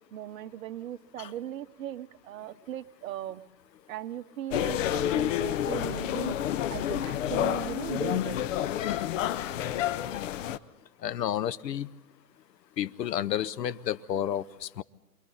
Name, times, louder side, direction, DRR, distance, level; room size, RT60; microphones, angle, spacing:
voice 1, 0.1-3.4 3.9-6.4 6.7-8.4, right 11 dB, 55° right, 9 dB, 1.0 m, -38 dB
sound 1, 4.5-10.6, left 11 dB, 50° left, 0.8 m, -29 dB
voice 2, 11.0-11.9 12.8-14.8, left 10 dB, 85° left, 16 dB, 0.8 m, -31 dB
28.5 x 24.0 x 4.0 m, 1.0 s
hypercardioid pair, 140°, 49 cm